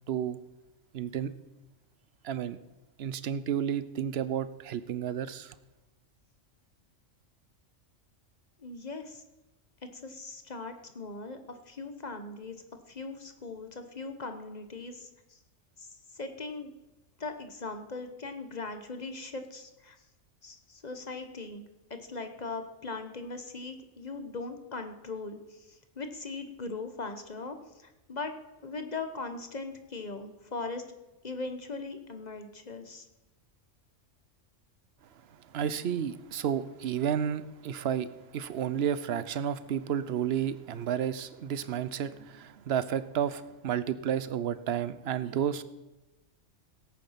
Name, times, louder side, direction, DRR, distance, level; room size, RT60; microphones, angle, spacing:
voice 1, 0.1-0.4 0.9-1.3 2.2-2.6 3.0-5.5 35.3-45.6, right 9 dB, 60° right, 14 dB, 0.9 m, -31 dB
voice 2, 8.6-9.2 9.9-15.1 15.8-15.9 16.1-16.7 17.2-20.0 20.4-21.6 21.9-28.3 28.6-30.8 31.2-33.1, left 3 dB, 35° left, 7 dB, 1.1 m, -40 dB
17.0 x 8.7 x 5.7 m, 1.0 s
omnidirectional pair, 1.3 m